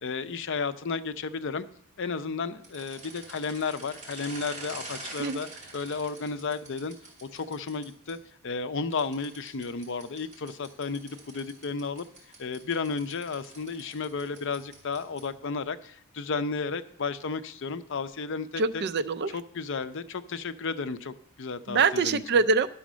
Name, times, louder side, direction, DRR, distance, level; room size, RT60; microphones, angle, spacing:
voice 1, 0.0-1.7 2.0-5.5 5.7-6.9 7.2-8.2 8.4-12.1 12.4-18.8 19.3-22.2, left 4 dB, 55° left, 12 dB, 0.6 m, -33 dB
sound 1, 2.6-8.1 8.9-15.4, right 2 dB, 30° right, 4.2 m, -46 dB
voice 2, 18.6-19.4 21.7-22.7, right 4 dB, 50° right, 13 dB, 0.5 m, -24 dB
11.5 x 6.3 x 6.2 m, 0.69 s
head